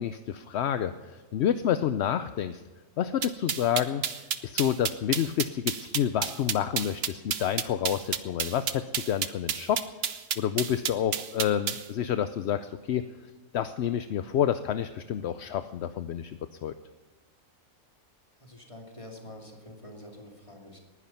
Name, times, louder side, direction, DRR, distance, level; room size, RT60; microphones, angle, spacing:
voice 1, 0.0-2.6 3.0-4.0 4.4-9.8 10.4-13.0 13.5-16.7, left 9 dB, 60° left, 11 dB, 0.7 m, -29 dB
sound 1, 3.2-11.8, right 7 dB, 50° right, 1.0 m, -30 dB
voice 2, 18.4-20.8, left 1 dB, 20° left, 0 dB, 2.6 m, -46 dB
19.5 x 11.0 x 5.7 m, 1.3 s
omnidirectional pair, 1.5 m